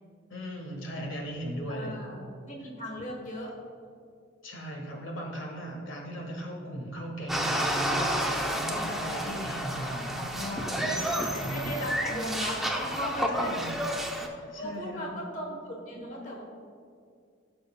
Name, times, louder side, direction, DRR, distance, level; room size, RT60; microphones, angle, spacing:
voice 1, 0.3-1.9 4.4-11.7 13.3-13.8 14.2-15.3, equal, 85° left, 0 dB, 1.7 m, -37 dB
voice 2, 1.7-3.5 11.3-13.5 13.8-14.0 14.6-16.4, equal, 40° left, -1 dB, 1.1 m, -37 dB
sound 1, 7.3-14.3, right 1 dB, ahead, 0.7 m, -30 dB
15.5 x 6.7 x 2.3 m, 2.3 s
head